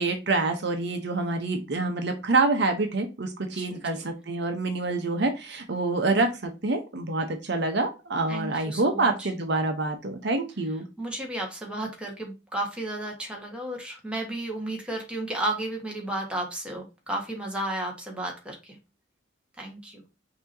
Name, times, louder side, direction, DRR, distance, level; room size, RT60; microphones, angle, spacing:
voice 1, 0.0-10.8, right 3 dB, 60° right, 5 dB, 0.9 m, -26 dB
voice 2, 3.5-4.1 8.3-9.3 11.0-18.8 19.6-20.0, right 1 dB, 5° right, 1 dB, 1.5 m, -33 dB
5.9 x 2.9 x 2.7 m, 0.28 s
head